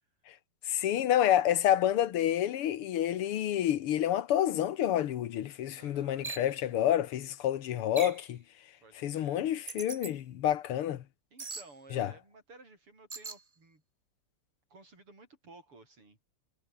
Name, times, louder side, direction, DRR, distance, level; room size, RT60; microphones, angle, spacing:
voice 1, 0.7-8.4 9.0-11.0 11.9-12.1, left 11 dB, 90° left, 2.1 m, -28 dB
voice 2, 5.8-6.3 8.8-9.4 11.3-13.8 14.7-16.2, right 3 dB, 85° right, 8.3 m, -55 dB
sound 1, 6.2-6.5 8.0-8.3 9.7-10.1 11.4-11.7 13.1-13.4, right 4 dB, 30° right, 0.8 m, -40 dB
omnidirectional pair, 2.4 m